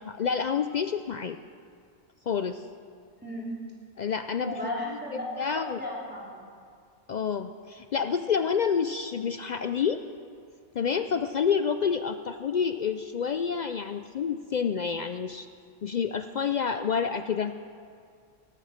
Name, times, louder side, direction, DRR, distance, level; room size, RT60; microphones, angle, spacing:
voice 1, 0.0-1.4 2.3-2.6 4.0-4.6 5.1-5.8 7.1-10.0 10.7-15.5 15.8-17.5, left 6 dB, 75° left, 9 dB, 0.4 m, -28 dB
voice 2, 3.2-3.7 4.4-6.4, left 1 dB, 10° right, -6 dB, 3.4 m, -35 dB
17.0 x 11.5 x 6.5 m, 2.3 s
omnidirectional pair, 1.3 m